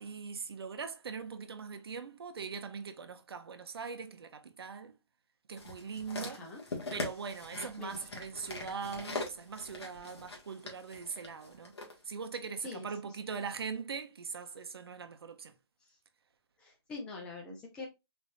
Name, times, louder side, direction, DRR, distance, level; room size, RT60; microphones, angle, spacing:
voice 1, 0.0-5.0 5.5-6.4 6.9-11.7 12.0-15.5, right 5 dB, 60° right, 0.9 m, -41 dB
sound 1, 5.6-11.9 12.7-12.8, left 3 dB, 70° left, 1.8 m, -42 dB
voice 2, 6.2-6.6 7.8-8.0 12.6-12.9 16.6-17.9, left 3 dB, 5° left, 0.6 m, -44 dB
4.3 x 3.6 x 2.6 m
hypercardioid pair, 175°, 14 cm